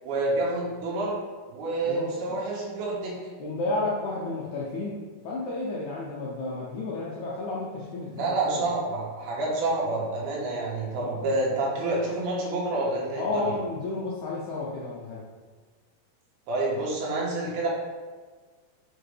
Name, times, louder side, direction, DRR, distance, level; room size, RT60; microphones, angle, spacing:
voice 1, 0.0-1.2 1.5-3.1 8.1-13.5 16.5-17.7, right 2 dB, 90° right, -4 dB, 3.2 m, -28 dB
voice 2, 1.8-2.4 3.4-8.7 11.0-11.3 13.2-15.2, left 3 dB, 80° left, -5 dB, 1.7 m, -32 dB
6.8 x 4.5 x 3.3 m, 1.4 s
omnidirectional pair, 4.3 m